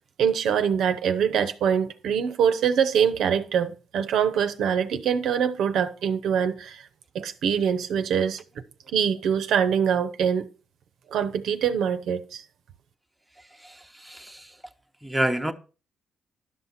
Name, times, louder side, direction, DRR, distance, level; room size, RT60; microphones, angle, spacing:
voice 1, 0.2-6.9 7.1-8.6 8.9-10.5 11.1-12.4, right 7 dB, 75° right, 0.7 m, -24 dB
voice 2, 13.4-14.6 15.0-15.5, right 1 dB, 5° right, 0.8 m, -29 dB
11.5 x 5.7 x 4.1 m
cardioid pair, 90°, 0 cm